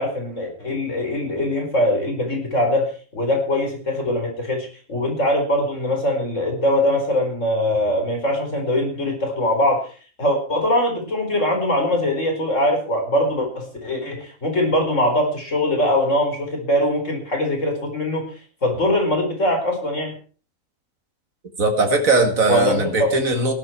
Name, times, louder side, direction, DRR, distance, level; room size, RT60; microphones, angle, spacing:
voice 1, 0.0-9.9 10.2-18.3 18.6-20.1 22.5-23.1, left 1 dB, 65° left, 3 dB, 5.1 m, -22 dB
voice 2, 21.6-23.5, right 2 dB, 90° right, 5 dB, 2.5 m, -19 dB
17.0 x 12.5 x 4.5 m, 0.38 s
omnidirectional pair, 1.4 m